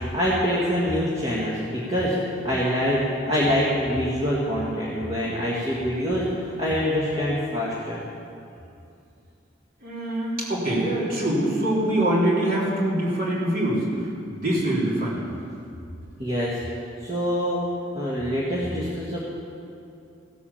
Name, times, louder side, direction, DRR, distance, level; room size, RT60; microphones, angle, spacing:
voice 1, 0.1-2.2 2.4-8.0 16.2-16.6 17.0-17.6 17.9-19.2, equal, 30° right, -7 dB, 1.8 m, -25 dB
voice 2, 9.8-13.9 14.3-15.2, right 1 dB, 45° right, -6 dB, 3.6 m, -24 dB
16.0 x 8.4 x 7.2 m, 2.6 s
head